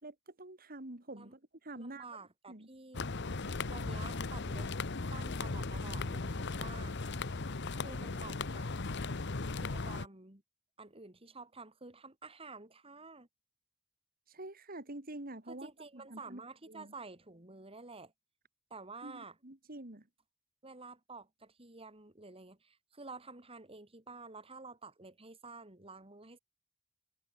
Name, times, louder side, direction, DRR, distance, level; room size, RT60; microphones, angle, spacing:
voice 1, 0.0-2.0 2.5-2.7 14.3-16.9 19.0-20.1, right 2 dB, 45° right, 2.8 m, -47 dB
voice 2, 1.7-3.0 3.5-4.7 5.1-7.0 7.8-8.7 9.6-10.4 10.8-13.3 15.5-18.1 18.7-19.4 20.6-26.4, right 3 dB, 30° right, 3.3 m, -50 dB
sound 1, 2.9-10.1, left 3 dB, 60° left, 1.1 m, -37 dB
head